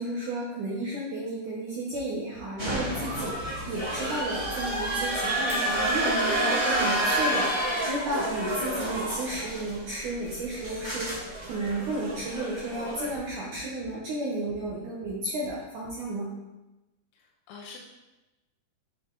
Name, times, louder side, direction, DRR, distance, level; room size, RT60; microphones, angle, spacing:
voice 1, 0.0-16.3, right 2 dB, 85° right, -5 dB, 1.7 m, -33 dB
sound 1, 1.9-2.0 2.3-2.4 2.9-3.0 4.4-5.2 5.7-6.0 6.3-6.4 6.7-6.8 7.1-7.2 8.7-9.0 9.3-9.4 10.7-10.8 11.1-11.2 11.6-11.7 13.1-13.9 14.5-14.7 15.0-15.1 15.4-15.5 15.8-15.9, left 3 dB, 65° right, 3.5 m, -50 dB
sound 2, 2.6-13.1, right 1 dB, 45° right, 0.3 m, -29 dB
voice 2, 17.1-17.8, left 4 dB, 75° left, -1 dB, 2.5 m, -46 dB
7.5 x 7.1 x 4.0 m, 1.0 s
omnidirectional pair, 5.3 m